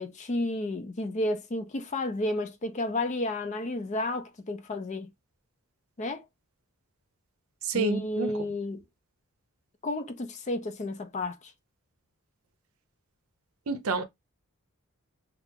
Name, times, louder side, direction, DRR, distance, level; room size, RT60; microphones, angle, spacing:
voice 1, 0.0-5.1 6.0-6.3 7.7-8.8 9.8-11.5, left 2 dB, 35° left, 0.5 m, -32 dB
voice 2, 7.6-8.3 13.7-14.0, right 4 dB, 70° right, 0.6 m, -29 dB
2.9 x 2.4 x 3.5 m
head